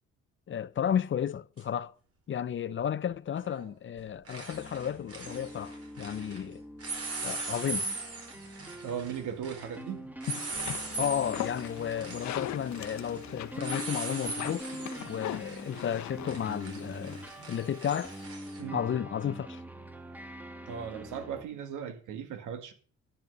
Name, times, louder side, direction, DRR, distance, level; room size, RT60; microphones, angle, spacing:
voice 1, 0.5-1.9 2.3-6.6 7.2-7.9 11.0-14.7 15.0-17.2 17.5-18.1 18.7-19.6, left 9 dB, 40° left, 0.6 m, -33 dB
sound 1, 1.6-1.7 3.4-3.7 4.0-6.4 6.8-18.6, right 3 dB, 50° right, 4.4 m, -40 dB
sound 2, 4.5-21.4, equal, 5° right, 1.4 m, -45 dB
voice 2, 8.8-10.1 18.6-18.9 20.7-22.7, right 8 dB, 80° right, 1.8 m, -37 dB
sound 3, 10.2-18.2, left 12 dB, 65° left, 0.9 m, -41 dB
10.0 x 6.8 x 6.6 m
cardioid pair, 90°, 30 cm